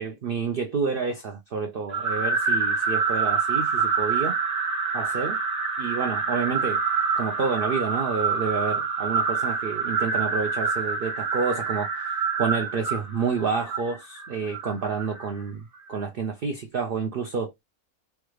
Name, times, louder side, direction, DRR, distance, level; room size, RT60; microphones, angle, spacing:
voice 1, 0.0-4.3 4.9-5.4 5.8-6.8 7.2-17.5, right 5 dB, 70° right, 0.5 m, -29 dB
sound 1, 1.9-15.3, right 5 dB, 15° right, 0.7 m, -26 dB
3.3 x 2.3 x 3.0 m
omnidirectional pair, 1.6 m